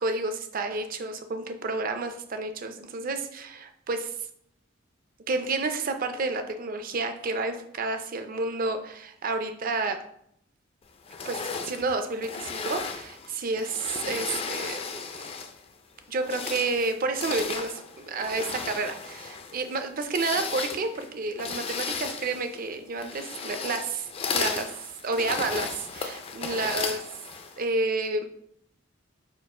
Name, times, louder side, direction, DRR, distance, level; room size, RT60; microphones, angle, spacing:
voice 1, 0.0-4.1 5.3-10.0 11.3-11.4 11.7-15.3 16.1-27.0 27.6-28.2, right 3 dB, 45° right, 7 dB, 0.5 m, -30 dB
sound 1, 11.1-15.7 16.1-27.6, left 5 dB, 30° left, 0.4 m, -35 dB
4.5 x 2.4 x 4.7 m, 0.70 s
head